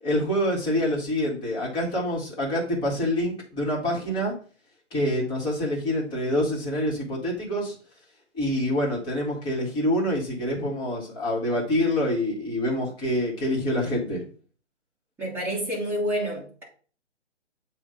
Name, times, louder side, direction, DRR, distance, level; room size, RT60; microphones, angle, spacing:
voice 1, 0.0-4.3 4.9-7.7 8.3-14.2, left 1 dB, 15° left, 1.8 m, -26 dB
voice 2, 15.2-16.6, equal, 5° right, 1.8 m, -28 dB
7.8 x 2.8 x 5.2 m
figure-of-eight pair, 145°, 36 cm